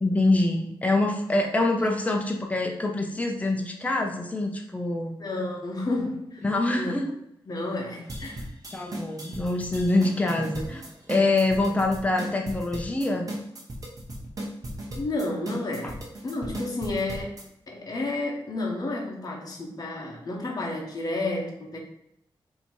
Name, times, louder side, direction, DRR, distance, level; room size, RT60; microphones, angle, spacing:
voice 1, 0.0-5.1 6.4-7.1 8.7-10.8 11.1-13.3, left 2 dB, 15° left, 2 dB, 0.6 m, -25 dB
voice 2, 5.2-6.4 6.8-7.0 7.5-8.4 15.0-16.0 16.2-17.3 17.7-21.8, left 2 dB, 45° left, -1 dB, 0.9 m, -31 dB
sound 1, 8.1-17.4, right 1 dB, 40° right, 1.0 m, -36 dB
4.1 x 2.8 x 4.5 m, 0.77 s
wide cardioid pair, 130°, 9 cm